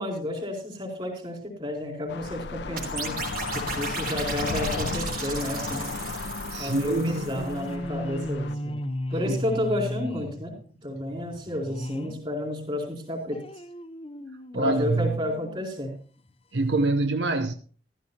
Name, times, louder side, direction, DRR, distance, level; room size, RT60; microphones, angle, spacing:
voice 1, 0.0-3.2 3.5-5.9 6.6-8.8 9.1-10.6 10.8-13.4 14.5-15.9, left 1 dB, 30° right, 4.5 m, -31 dB
sound 1, 2.1-8.5, left 4 dB, 70° left, 0.6 m, -34 dB
sound 2, 2.7-12.3 12.7-15.8 16.3-16.4 16.6-16.7, left 1 dB, 30° left, 0.7 m, -38 dB
sound 3, 2.8-7.6, right 5 dB, 55° right, 3.5 m, -36 dB
voice 2, 6.5-7.2 9.2-9.4 14.5-15.2 16.5-17.5, right 2 dB, 80° right, 0.9 m, -25 dB
14.5 x 13.5 x 2.8 m
head